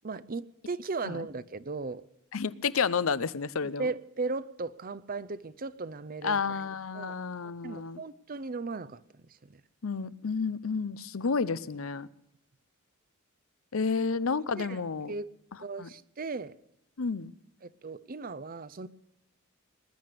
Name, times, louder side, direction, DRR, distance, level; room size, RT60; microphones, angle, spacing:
voice 1, 0.0-2.0 3.6-6.6 6.9-7.2 7.6-9.6 14.0-14.1 14.5-14.8 15.1-15.3 15.6-16.5 17.6-18.9, right 3 dB, 45° right, 0.6 m, -37 dB
voice 2, 2.3-3.9 6.2-8.0 9.8-12.1 13.7-15.1 15.8-15.9 17.0-17.3, left 5 dB, 80° left, 0.7 m, -30 dB
20.0 x 10.5 x 6.7 m
head